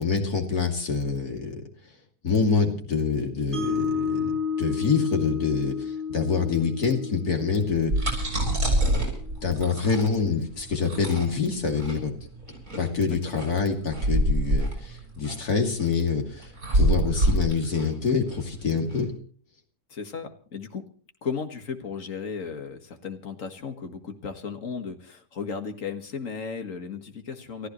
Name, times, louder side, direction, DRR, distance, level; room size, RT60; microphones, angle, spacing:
voice 1, 0.0-1.6 2.2-8.2 8.5-8.6 9.4-12.1 12.8-19.1, left 5 dB, 85° left, 3 dB, 3.2 m, -26 dB
Mallet percussion, 3.5-9.7, left 6 dB, ahead, 7.8 m, -32 dB
sound 1, 7.6-19.0, right 1 dB, 60° right, 7.2 m, -26 dB
voice 2, 19.9-20.8 21.2-27.7, left 5 dB, 60° left, 7 dB, 2.1 m, -35 dB
30.0 x 14.0 x 3.1 m, 0.43 s
omnidirectional pair, 1.6 m